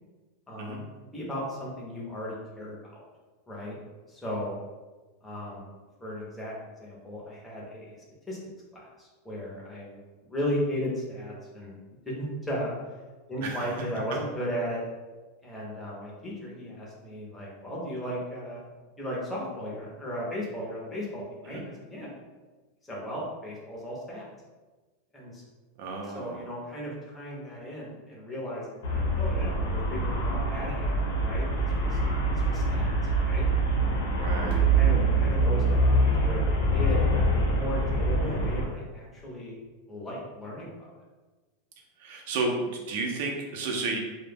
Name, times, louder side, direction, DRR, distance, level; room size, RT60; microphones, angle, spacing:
voice 1, 0.5-3.0 3.5-3.8 4.1-4.6 5.2-5.7 6.0-6.5 6.8-7.9 8.3-8.4 8.7-10.0 10.3-11.8 12.1-12.7 13.3-14.8 15.4-18.6 19.0-22.1 22.8-24.3 25.1-25.4 26.1-32.0 32.2-32.9 33.2-33.5 34.2-37.0 37.6-39.6 39.9-40.9, equal, 5° left, -5 dB, 0.5 m, -36 dB
voice 2, 25.8-26.5 34.2-34.6 42.0-44.0, right 3 dB, 50° right, 1 dB, 0.4 m, -32 dB
Traffic noise roadway noise, 28.8-38.7, right 2 dB, 70° left, 0.6 m, -25 dB
2.0 x 2.0 x 3.3 m, 1.2 s
supercardioid pair, 180°, 0 cm